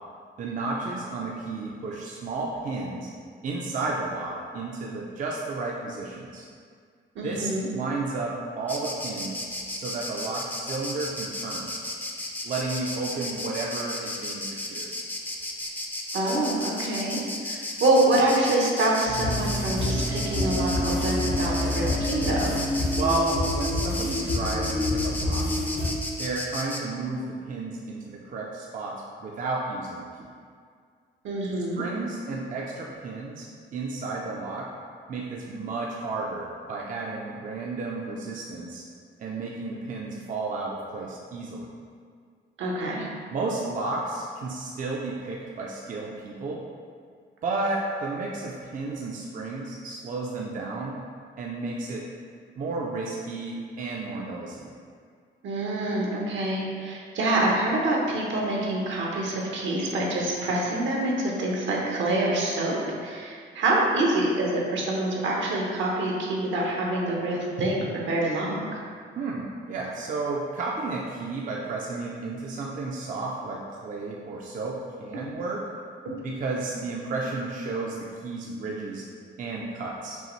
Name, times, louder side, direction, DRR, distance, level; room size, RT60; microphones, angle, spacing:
voice 1, 0.4-3.1 3.4-6.4 7.2-9.5 9.7-11.7 12.4-14.9 22.9-25.5 26.2-30.3 31.8-33.5 33.7-34.7 35.1-38.8 39.2-41.7 43.3-46.6 47.4-51.0 51.4-52.0 52.6-54.7 69.2-75.6 76.2-79.0 79.4-80.2, right 3 dB, 40° right, -3 dB, 0.5 m, -32 dB
voice 2, 7.1-7.7 16.1-22.5 31.2-31.8 42.6-43.1 55.4-68.6, right 2 dB, 70° right, -2 dB, 0.9 m, -26 dB
Insect, 8.7-26.8, left 1 dB, 10° left, 0.5 m, -34 dB
sound 1, 19.1-25.9, left 1 dB, 65° left, 1.2 m, -27 dB
5.4 x 2.5 x 3.1 m, 2.1 s
cardioid pair, 90°, 20 cm